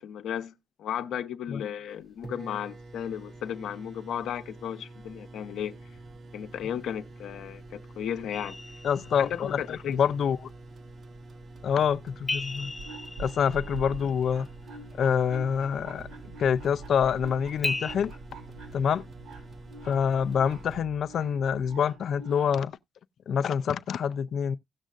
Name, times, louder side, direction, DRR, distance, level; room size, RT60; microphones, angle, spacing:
voice 1, 0.0-5.8 6.3-8.6 9.2-10.0, left 9 dB, 80° left, 0.8 m, -35 dB
sound 1, 1.9-2.0 2.2-20.8, right 2 dB, 45° right, 0.9 m, -46 dB
sound 2, 8.3-9.6 12.3-14.3 17.6-18.0, left 3 dB, 20° left, 0.8 m, -35 dB
voice 2, 8.8-10.5 11.6-12.7 13.2-14.5 15.0-16.1 16.4-18.1 18.7-19.0 19.8-22.8 23.3-24.6, left 7 dB, 60° left, 0.5 m, -26 dB
sound 3, 12.5-22.7, right 3 dB, 80° right, 5.1 m, -46 dB
17.0 x 6.3 x 2.5 m
cardioid pair, 90°, 0 cm